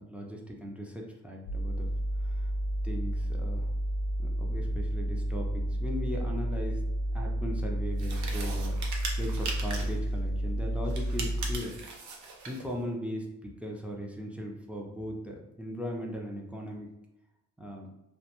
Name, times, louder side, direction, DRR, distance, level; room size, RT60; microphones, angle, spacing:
voice 1, 0.0-1.9 2.2-2.5 2.8-3.7 4.2-6.8 7.1-8.8 9.2-11.8 12.5-16.9 17.6-17.9, equal, 5° right, -1 dB, 0.4 m, -38 dB
sound 1, 1.5-11.6, right 1 dB, 50° left, 0.5 m, -31 dB
sound 2, 8.0-10.0 10.9-12.7, right 3 dB, 75° right, 0.6 m, -39 dB
2.2 x 2.2 x 2.8 m, 0.95 s
cardioid pair, 90°, 30 cm